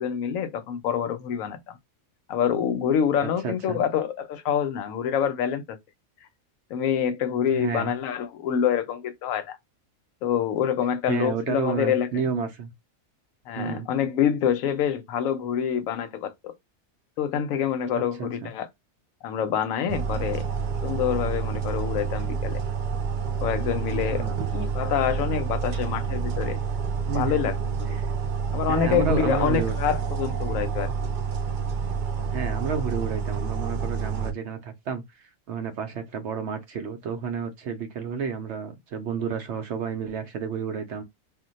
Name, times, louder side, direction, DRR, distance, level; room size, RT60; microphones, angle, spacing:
voice 1, 0.0-1.8 2.3-5.8 6.7-9.6 10.2-12.1 13.5-16.5 17.2-18.7 19.2-20.5 20.8-22.6 23.4-26.6 27.1-28.0 28.5-30.9, left 8 dB, 75° left, 1.0 m, -26 dB
voice 2, 3.2-3.8 7.5-7.9 11.1-12.7 13.6-13.9 18.2-18.5 24.1-24.3 27.1-27.3 27.9-28.1 28.7-29.7 32.3-41.0, right 6 dB, 65° right, 0.8 m, -31 dB
sound 1, 19.9-34.3, right 6 dB, 90° right, 0.4 m, -28 dB
2.4 x 2.1 x 3.8 m
omnidirectional pair, 1.4 m